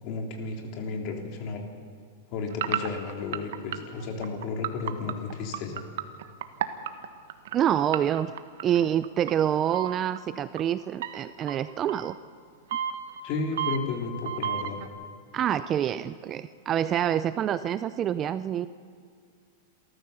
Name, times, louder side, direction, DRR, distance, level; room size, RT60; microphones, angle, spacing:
voice 1, 0.0-1.6 2.3-5.8 13.2-14.8, left 4 dB, 45° left, 2 dB, 3.4 m, -33 dB
sound 1, 2.5-7.5 7.9-9.3 9.7-10.2 10.6-10.7 11.0-12.1 12.7-14.9, right 10 dB, 70° right, 1.4 m, -31 dB
voice 2, 7.5-8.3 8.6-12.2 15.3-18.7, right 10 dB, 25° right, 14 dB, 0.5 m, -26 dB
28.0 x 14.0 x 6.9 m, 2.2 s
supercardioid pair, 145°, 0 cm